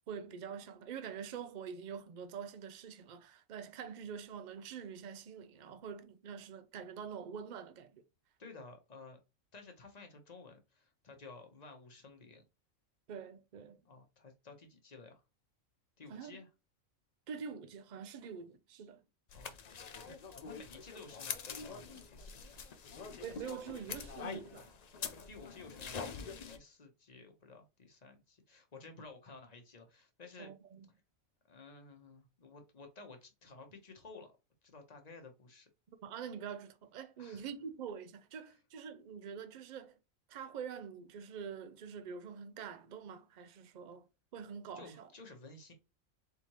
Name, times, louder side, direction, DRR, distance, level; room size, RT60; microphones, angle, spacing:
voice 1, 0.0-8.0 13.1-13.8 16.1-16.3 17.3-19.0 23.2-24.7 30.4-30.9 36.0-39.9 40.3-44.1 44.3-45.1, right 7 dB, 65° right, 0.4 m, -45 dB
voice 2, 8.4-9.2 9.5-12.4 13.8-15.2 16.0-16.5 19.3-19.5 20.0-22.6 25.1-30.5 31.5-34.4 34.6-35.7 37.2-37.5 44.7-45.7, left 3 dB, 35° left, 0.9 m, -54 dB
sound 1, 19.3-26.6, left 6 dB, 85° left, 0.3 m, -45 dB
4.3 x 3.6 x 2.9 m
omnidirectional pair, 1.4 m